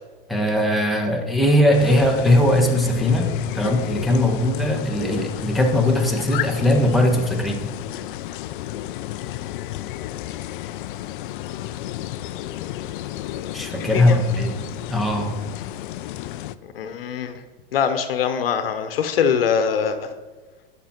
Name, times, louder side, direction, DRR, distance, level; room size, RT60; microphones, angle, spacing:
voice 1, 0.3-7.7 13.5-14.6 14.9-15.3, left 1 dB, ahead, 0 dB, 1.5 m, -19 dB
Rural By Water, 1.7-16.5, left 13 dB, 60° left, 0.5 m, -32 dB
voice 2, 13.8-14.2 16.6-17.4 17.7-20.1, left 7 dB, 80° left, 9 dB, 1.1 m, -23 dB
10.5 x 6.2 x 4.4 m, 1.3 s
hypercardioid pair, 110°, 29 cm